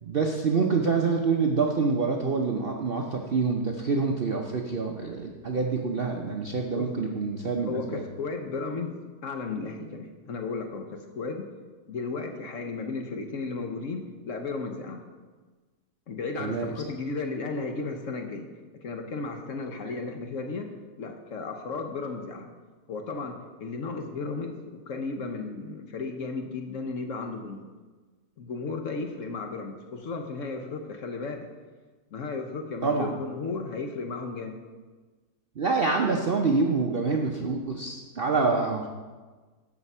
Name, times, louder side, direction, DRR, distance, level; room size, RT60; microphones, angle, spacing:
voice 1, 0.0-8.0 16.4-16.7 32.8-33.1 35.6-38.9, right 4 dB, 55° right, 1 dB, 0.6 m, -26 dB
voice 2, 7.7-11.5 11.9-15.0 16.1-18.5 18.8-20.7 21.0-22.5 22.9-27.7 28.4-31.5 32.1-34.6 38.4-38.7, left 4 dB, 55° left, 4 dB, 1.0 m, -34 dB
13.0 x 5.0 x 5.4 m, 1.4 s
omnidirectional pair, 1.8 m